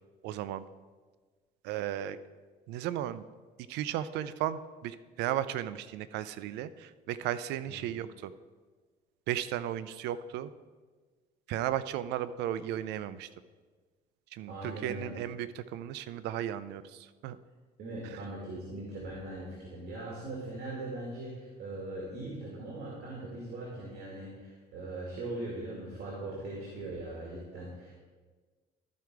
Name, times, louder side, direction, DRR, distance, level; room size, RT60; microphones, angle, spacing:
voice 1, 0.2-0.6 1.6-2.2 2.7-3.2 3.7-8.3 9.3-10.5 11.5-13.3 14.3-17.4, right 11 dB, 85° right, 15 dB, 0.4 m, -35 dB
voice 2, 14.5-15.1 17.8-28.0, right 2 dB, 70° right, -3 dB, 2.2 m, -40 dB
13.0 x 4.8 x 4.6 m, 1.4 s
cardioid pair, 110°, 17 cm